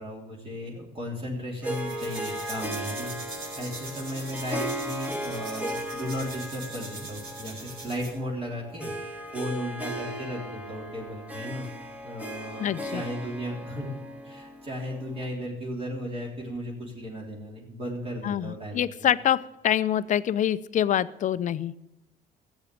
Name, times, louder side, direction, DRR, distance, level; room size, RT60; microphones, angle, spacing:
voice 1, 0.0-8.9 9.3-11.7 12.0-19.1, equal, 35° right, -3 dB, 3.4 m, -35 dB
Harp, 1.6-15.3, equal, 10° right, 1.7 m, -37 dB
sound 1, 1.7-8.2, right 2 dB, 65° right, 5.4 m, -42 dB
voice 2, 12.6-13.0 18.2-19.4 19.6-21.7, left 10 dB, 50° left, 15 dB, 0.6 m, -25 dB
14.0 x 8.2 x 8.4 m, 0.93 s
cardioid pair, 110°, 17 cm